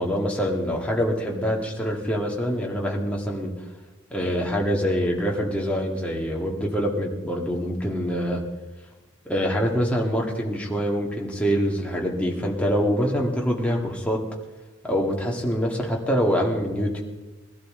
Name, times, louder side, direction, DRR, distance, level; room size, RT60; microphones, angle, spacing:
voice 1, 0.0-3.5 4.1-8.4 9.3-14.2 14.8-17.0, equal, 5° left, -1 dB, 1.9 m, -25 dB
21.0 x 12.5 x 3.8 m, 1.2 s
head